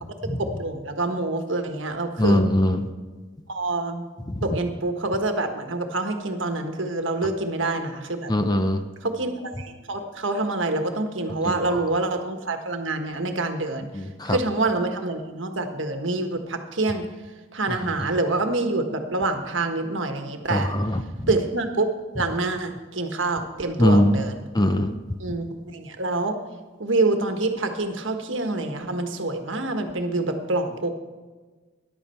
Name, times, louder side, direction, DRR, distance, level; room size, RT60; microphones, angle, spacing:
voice 1, 0.4-2.4 3.5-4.0 4.4-8.3 9.0-13.9 14.2-17.0 17.5-20.7 21.3-21.9 22.1-24.5 25.2-26.4 26.8-30.9, right 2 dB, 65° right, 5 dB, 1.4 m, -26 dB
voice 2, 2.2-2.9 8.3-8.8 13.9-14.4 20.5-21.0 23.8-24.1 24.5-24.9, left 1 dB, 20° left, 8 dB, 0.7 m, -20 dB
14.0 x 11.0 x 4.5 m, 1.3 s
head